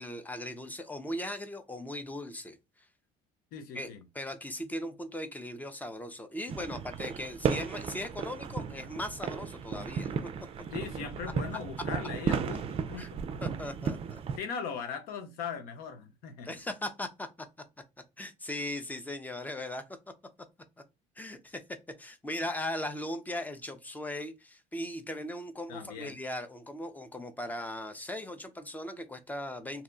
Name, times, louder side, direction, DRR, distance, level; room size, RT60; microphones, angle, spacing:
voice 1, 0.0-2.9 3.7-10.1 11.8-11.9 13.0-13.1 13.4-14.2 16.4-17.3 18.2-19.8 21.2-21.6 22.0-29.8, left 1 dB, 10° left, 0.6 m, -38 dB
voice 2, 3.5-4.0 10.7-13.2 14.4-16.6 25.7-26.1, left 6 dB, 80° left, 0.8 m, -39 dB
sound 1, 6.5-14.4, right 6 dB, 40° right, 0.4 m, -34 dB
2.8 x 2.1 x 3.8 m
cardioid pair, 105°, 15 cm